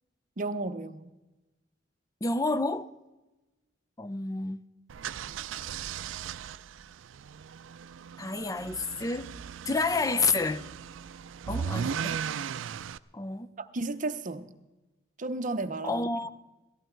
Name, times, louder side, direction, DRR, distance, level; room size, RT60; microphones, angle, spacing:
voice 1, 0.4-1.1 13.6-14.5 15.2-16.1, right 2 dB, 45° right, 0.8 m, -33 dB
voice 2, 2.2-2.9 4.0-4.6 8.2-9.3 9.7-10.6 11.5-12.2 13.1-13.5 15.8-16.3, left 3 dB, 20° left, 0.5 m, -29 dB
sound 1, 4.9-13.0, right 7 dB, 80° right, 0.4 m, -37 dB
18.0 x 14.5 x 4.5 m
head